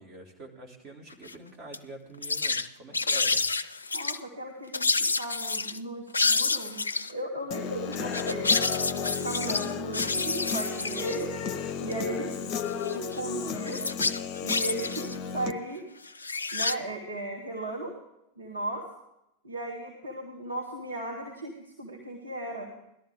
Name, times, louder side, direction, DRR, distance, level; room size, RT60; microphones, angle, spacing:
voice 1, 0.0-3.5, right 1 dB, 30° right, 1 dB, 2.9 m, -46 dB
sound 1, 1.1-1.3 1.7-1.8 2.2-2.7 2.9-4.2 4.7-5.8 6.1-7.1 7.9-11.2 11.9-12.0 12.6-13.2 13.7-15.2 16.0-16.7, left 3 dB, 75° left, 0.4 m, -28 dB
voice 2, 3.9-8.5 8.9-11.3 11.8-12.5 12.9-13.8 14.4-15.8 16.5-17.9 18.4-18.8 19.4-22.7, right 1 dB, 70° right, -2 dB, 2.3 m, -36 dB
Human voice / Guitar, 7.5-15.5, left 6 dB, 35° left, 0.8 m, -33 dB
18.0 x 12.5 x 3.5 m, 0.82 s
figure-of-eight pair, 90°, 0 cm